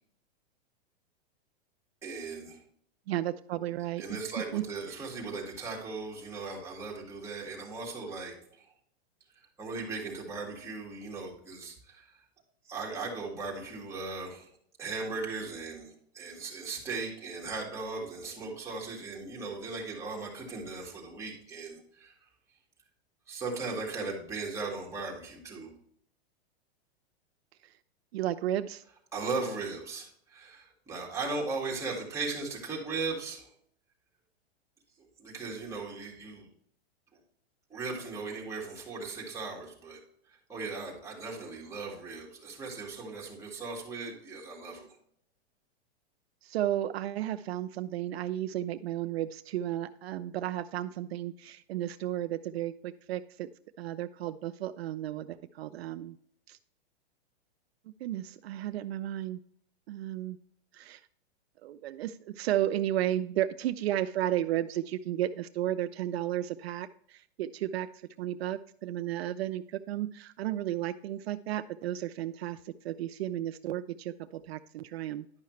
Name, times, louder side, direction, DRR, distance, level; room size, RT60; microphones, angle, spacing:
voice 1, 2.0-2.6 4.0-8.7 9.6-12.2 12.6-14.5 14.8-22.3 23.3-25.7 29.1-33.5 35.2-36.5 37.7-40.0 40.3-44.9, right 3 dB, 10° right, -4 dB, 1.9 m, -38 dB
voice 2, 3.1-4.2 4.5-5.1 28.1-28.8 46.4-53.5 53.8-56.2 56.5-56.6 58.0-59.4 59.9-60.4 60.7-61.0 61.6-67.9 68.2-75.2, right 13 dB, 70° right, 11 dB, 0.5 m, -33 dB
10.5 x 5.6 x 3.1 m, 0.67 s
hypercardioid pair, 150°, 32 cm